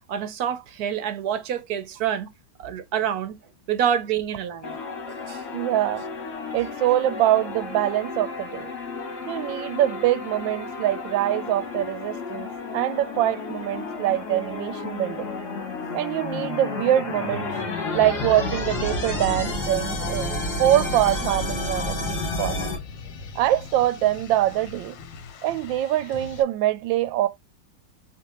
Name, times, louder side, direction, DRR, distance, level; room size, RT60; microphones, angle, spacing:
voice 1, 0.1-2.3 2.6-3.4 3.7-4.8 5.1-5.5, right 9 dB, 65° right, 1.1 m, -27 dB
sound 1, 4.6-22.8, left 3 dB, 60° left, 2.2 m, -31 dB
voice 2, 5.5-6.1 6.5-8.7 9.3-15.3 15.9-17.5 17.9-22.7 23.3-25.0 25.4-27.3, right 13 dB, 85° right, 1.3 m, -24 dB
sound 2, 21.1-26.4, left 5 dB, 80° left, 1.5 m, -41 dB
6.0 x 3.0 x 2.9 m
omnidirectional pair, 2.0 m